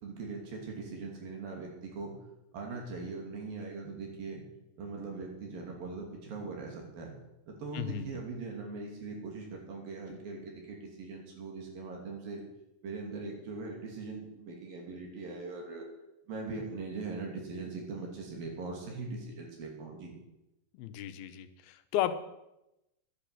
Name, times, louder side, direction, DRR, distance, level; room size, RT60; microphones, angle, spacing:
voice 1, 0.0-2.2 2.5-4.4 4.8-7.1 7.5-12.4 12.8-15.8 16.3-20.1, right 3 dB, 70° right, 0 dB, 4.4 m, -41 dB
voice 2, 7.7-8.0 20.7-22.2, left 11 dB, 85° left, 10 dB, 2.8 m, -34 dB
11.5 x 10.0 x 7.9 m, 0.91 s
omnidirectional pair, 4.3 m